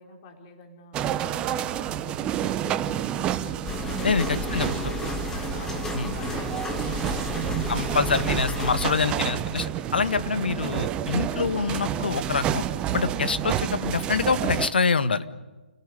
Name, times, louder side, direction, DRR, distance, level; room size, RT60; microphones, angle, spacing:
voice 1, 0.0-8.0, left 2 dB, 30° left, 3 dB, 4.7 m, -47 dB
sound 1, 0.9-14.7, right 10 dB, 15° right, 1.0 m, -29 dB
sound 2, 3.6-8.9, left 2 dB, 10° left, 2.0 m, -32 dB
voice 2, 7.7-12.6 12.9-15.2, left 5 dB, 65° left, 12 dB, 1.7 m, -25 dB
28.0 x 18.0 x 9.9 m, 1.2 s
figure-of-eight pair, 140°, 6 cm